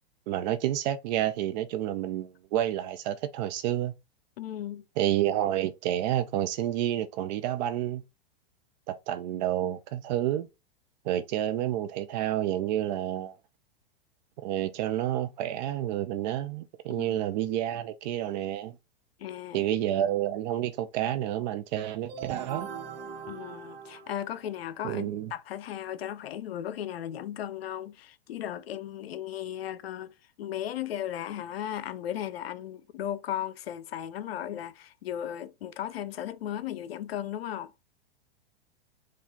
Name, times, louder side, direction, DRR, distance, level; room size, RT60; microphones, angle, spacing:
voice 1, 0.3-3.9 5.0-8.0 8.9-10.5 11.0-13.4 14.4-18.8 19.5-22.7 24.8-25.3, right 12 dB, 45° right, 0.5 m, -29 dB
voice 2, 4.4-4.8 16.9-17.2 19.2-19.7 23.3-37.7, left 11 dB, 75° left, 0.6 m, -36 dB
sound 1, 22.1-24.8, right 7 dB, 70° right, 1.2 m, -40 dB
4.7 x 2.5 x 3.6 m
hypercardioid pair, 115°, 30 cm